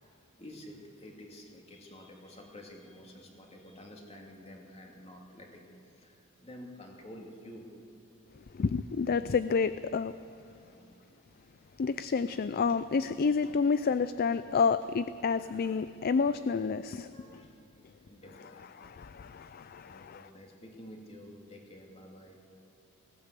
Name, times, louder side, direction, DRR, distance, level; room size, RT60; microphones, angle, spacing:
voice 1, 0.0-7.8 10.4-12.0 15.6-15.8 17.1-17.6 18.0-18.9 19.8-22.4, left 1 dB, 30° left, 0 dB, 2.7 m, -51 dB
voice 2, 8.5-10.1 11.8-17.4 18.8-20.2, left 5 dB, 45° left, 13 dB, 0.4 m, -29 dB
19.5 x 16.5 x 8.3 m, 2.6 s
head